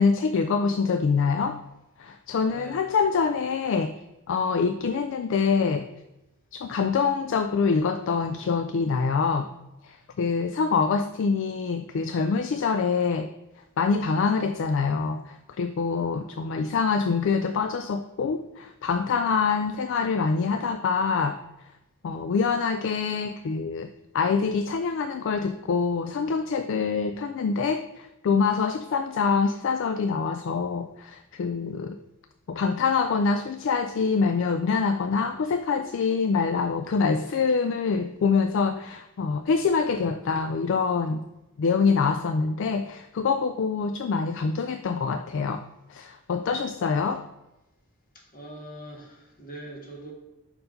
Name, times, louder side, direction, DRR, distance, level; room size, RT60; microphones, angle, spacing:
voice 1, 0.0-1.6 2.0-5.9 6.5-9.5 9.8-21.8 22.0-32.0 32.5-41.3 41.6-47.2, left 5 dB, 55° left, 8 dB, 0.3 m, -25 dB
voice 2, 2.5-2.9 48.1-50.1, right 1 dB, 40° left, -1 dB, 1.5 m, -42 dB
5.5 x 4.6 x 5.1 m, 0.95 s
head